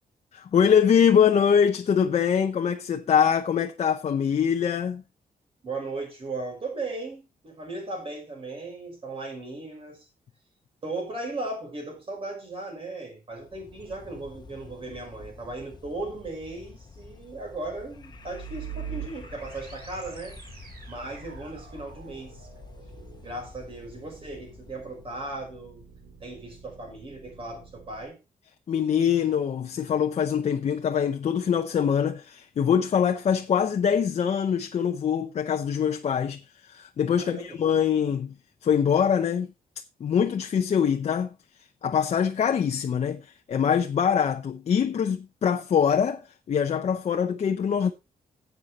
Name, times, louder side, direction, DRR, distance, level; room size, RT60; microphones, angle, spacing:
voice 1, 0.3-5.0 28.7-38.3 38.6-39.5 40.0-41.3 41.8-46.2 46.5-47.9, left 7 dB, 45° left, 0.7 m, -23 dB
voice 2, 5.6-10.1 10.8-20.4 20.9-22.5 23.2-25.8 26.2-28.2 37.2-37.6, right 2 dB, 35° right, 5.7 m, -37 dB
sound 1, 13.3-25.3, left 4 dB, 30° left, 1.1 m, -48 dB
sound 2, 18.1-28.0, right 8 dB, 85° right, 2.6 m, -45 dB
11.0 x 8.1 x 4.1 m
wide cardioid pair, 170°, 15 cm